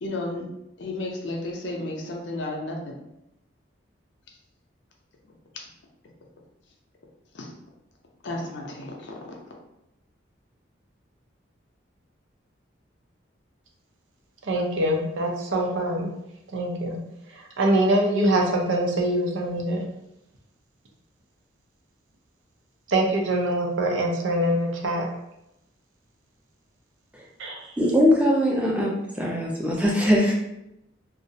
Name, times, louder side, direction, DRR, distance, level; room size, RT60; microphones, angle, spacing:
voice 1, 0.0-0.5 0.8-3.0 7.3-7.5 8.2-9.6, left 2 dB, 70° left, 0 dB, 0.5 m, -33 dB
voice 2, 14.5-16.1 16.5-17.0 17.3-19.8 22.9-25.0 27.4-27.7, right 1 dB, 80° right, 0 dB, 0.5 m, -24 dB
voice 3, 27.8-30.3, equal, 5° right, -3 dB, 0.4 m, -21 dB
2.4 x 2.0 x 2.7 m, 0.85 s
head